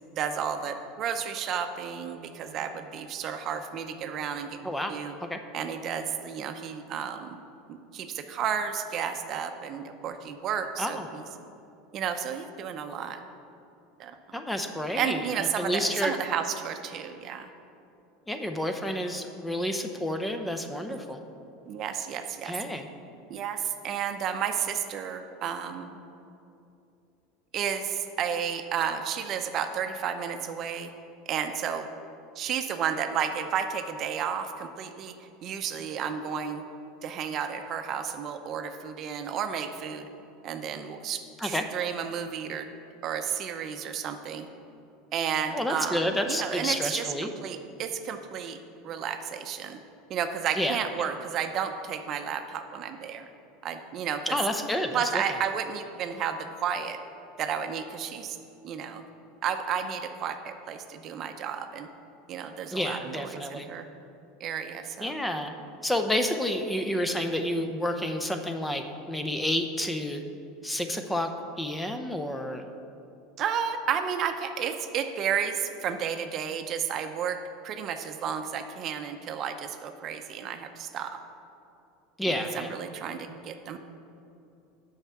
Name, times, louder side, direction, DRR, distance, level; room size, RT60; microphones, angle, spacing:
voice 1, 0.1-5.1 5.5-7.4 7.7-11.2 11.9-13.2 14.0-14.4 15.0-17.5 20.9-21.0 21.7-22.6 23.3-26.0 27.5-30.9 31.3-31.9 32.4-35.1 35.4-36.6 37.0-40.1 40.4-42.7 43.0-44.5 45.1-48.6 48.8-49.8 50.1-53.2 53.6-54.4 54.9-57.0 57.4-58.4 58.6-59.1 59.4-61.9 62.3-63.9 64.4-65.1 73.4-77.4 77.6-81.2 82.3-83.8, right 7 dB, 45° right, 7 dB, 0.7 m, -32 dB
voice 2, 4.6-4.9 5.3-5.4 10.8-11.1 14.3-16.1 18.3-21.2 22.4-22.9 41.4-41.6 45.5-47.3 50.6-51.1 54.3-55.0 62.7-63.7 65.0-65.5 65.8-70.2 70.6-71.3 71.6-72.6 82.2-82.7, left 1 dB, 10° left, 6 dB, 0.7 m, -30 dB
8.0 x 5.7 x 7.2 m, 2.7 s
supercardioid pair, 110°, 0 cm